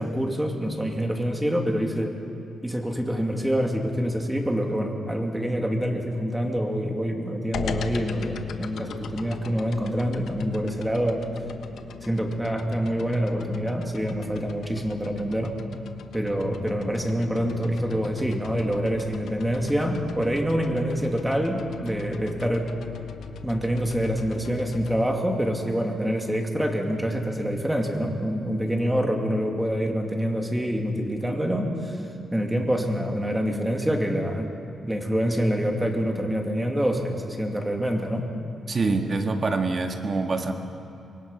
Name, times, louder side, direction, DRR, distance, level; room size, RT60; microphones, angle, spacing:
voice 1, 0.0-2.2 2.6-11.3 12.0-15.6 16.1-22.7 23.4-32.0 32.3-34.5 34.9-38.3, equal, 5° right, 2 dB, 2.5 m, -26 dB
sound 1, 7.5-25.0, left 6 dB, 75° left, 1.3 m, -39 dB
voice 2, 38.7-40.5, right 3 dB, 40° right, 4 dB, 1.7 m, -25 dB
25.5 x 22.5 x 5.6 m, 2.7 s
cardioid pair, 110°, 0 cm